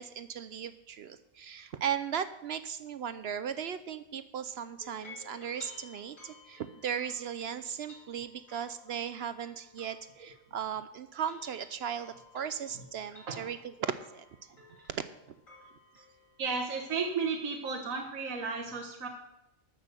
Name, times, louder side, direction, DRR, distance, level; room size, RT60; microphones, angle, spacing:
voice 1, 0.0-14.3 14.9-15.0, right 8 dB, 65° right, 12 dB, 0.7 m, -37 dB
sound 1, 4.8-10.8 11.1-16.8, left 3 dB, 75° left, 3.7 m, -55 dB
voice 2, 13.1-13.4 16.4-19.1, right 5 dB, 80° right, 0 dB, 1.7 m, -34 dB
13.0 x 6.2 x 6.7 m, 0.91 s
omnidirectional pair, 1.4 m